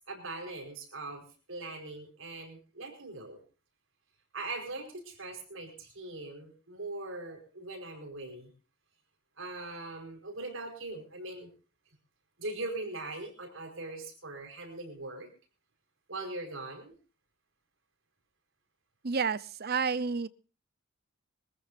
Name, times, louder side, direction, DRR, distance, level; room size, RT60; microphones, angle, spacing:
voice 1, 0.1-3.4 4.3-8.5 9.4-11.5 12.4-15.3 16.1-16.9, right 2 dB, 70° right, 4.8 m, -41 dB
voice 2, 19.0-20.3, right 5 dB, 50° right, 0.8 m, -30 dB
23.0 x 15.0 x 2.6 m
head